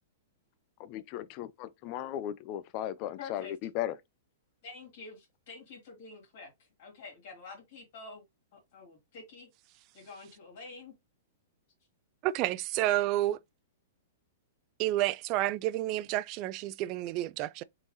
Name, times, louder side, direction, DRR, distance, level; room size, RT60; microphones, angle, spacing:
voice 1, 0.8-4.0, left 12 dB, 35° left, 0.4 m, -36 dB
voice 2, 3.2-3.5 4.6-5.2 5.5-6.5 6.8-8.2 8.5-9.5 9.9-10.9, left 4 dB, 55° left, 2.5 m, -47 dB
voice 3, 12.2-13.4 14.8-17.6, right 15 dB, 35° right, 0.3 m, -30 dB
3.9 x 3.8 x 3.0 m
hypercardioid pair, 155°, 0 cm